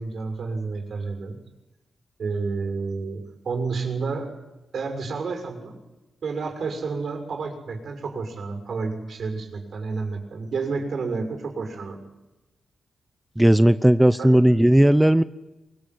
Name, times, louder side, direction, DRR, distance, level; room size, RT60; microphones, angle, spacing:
voice 1, 0.0-1.4 2.2-4.3 4.7-5.8 6.2-12.0 14.2-14.3, right 4 dB, 70° right, 6 dB, 6.7 m, -30 dB
voice 2, 13.4-15.2, right 1 dB, 10° right, 13 dB, 0.8 m, -16 dB
24.0 x 23.0 x 9.6 m, 1.0 s
cardioid pair, 85°, 0 cm